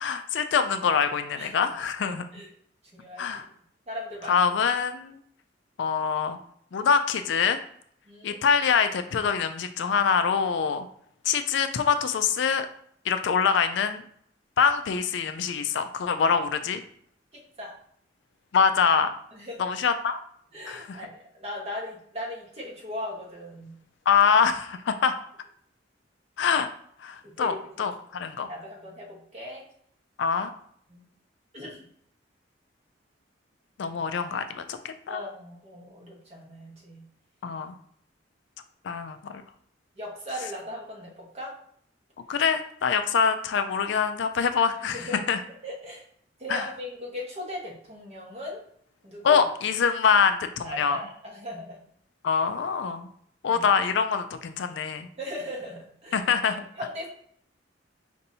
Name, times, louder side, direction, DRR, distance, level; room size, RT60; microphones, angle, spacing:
voice 1, 0.0-2.2 3.2-3.5 4.3-5.2 5.8-6.4 6.7-7.6 8.2-10.9 11.3-12.7 13.1-14.0 14.6-16.8 18.5-19.1 19.6-20.2 20.7-21.0 24.1-25.2 26.4-26.7 27.0-28.5 30.2-30.5 33.8-35.2 37.4-37.7 38.8-39.3 42.3-45.4 46.5-46.7 49.2-51.0 52.2-53.1 53.4-55.1 56.1-56.6, left 6 dB, 70° left, 9 dB, 0.4 m, -24 dB
voice 2, 1.3-1.7 2.3-2.5 2.9-3.4 3.9-4.5 8.1-8.4 17.6-17.7 19.3-19.5 20.5-23.7 27.2-27.9 28.5-29.6 30.9-31.0 31.5-31.8 35.1-37.0 40.0-41.5 44.8-45.3 45.6-46.0 46.4-48.6 49.0-49.4 50.6-51.8 53.4-53.7 55.2-56.2 56.8-57.1, left 1 dB, 35° right, -3 dB, 1.2 m, -38 dB
5.3 x 2.6 x 2.7 m, 0.63 s
head